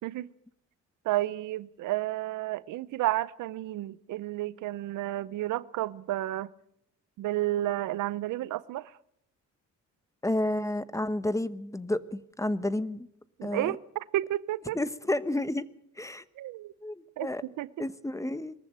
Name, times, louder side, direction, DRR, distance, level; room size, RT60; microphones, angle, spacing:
voice 1, 1.0-6.5 7.2-8.9 13.4-14.8 16.4-16.7 17.2-17.9, right 15 dB, 85° right, 19 dB, 0.8 m, -31 dB
voice 2, 10.2-13.1 13.4-13.8 14.7-15.7 16.0-16.2 16.8-17.4 17.8-18.5, left 1 dB, 10° left, 15 dB, 1.0 m, -31 dB
22.0 x 14.0 x 8.8 m, 0.74 s
cardioid pair, 90°, 30 cm